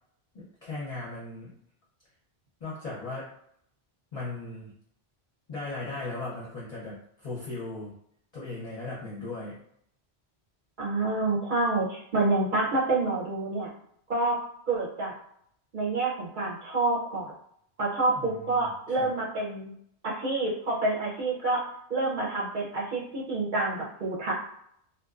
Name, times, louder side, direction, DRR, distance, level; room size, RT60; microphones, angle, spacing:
voice 1, 0.3-1.5 2.6-3.3 4.1-4.7 5.5-7.9 8.3-9.6 18.0-19.1, left 2 dB, 45° left, -6 dB, 0.7 m, -37 dB
voice 2, 10.8-13.7 14.1-14.4 14.7-15.1 15.7-17.3 17.8-19.7 20.0-21.6 21.9-24.3, right 2 dB, 50° right, -5 dB, 0.8 m, -28 dB
2.5 x 2.2 x 2.3 m, 0.70 s
omnidirectional pair, 1.1 m